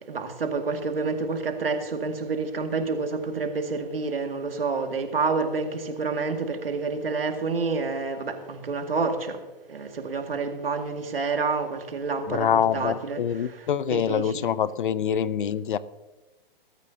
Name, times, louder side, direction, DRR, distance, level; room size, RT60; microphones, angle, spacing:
voice 1, 0.1-9.4 9.7-13.2 13.9-14.2, right 4 dB, 70° right, 5 dB, 2.2 m, -28 dB
voice 2, 12.3-15.8, left 8 dB, 60° left, 18 dB, 0.7 m, -25 dB
21.0 x 14.0 x 2.8 m, 1.1 s
figure-of-eight pair, 120°, 29 cm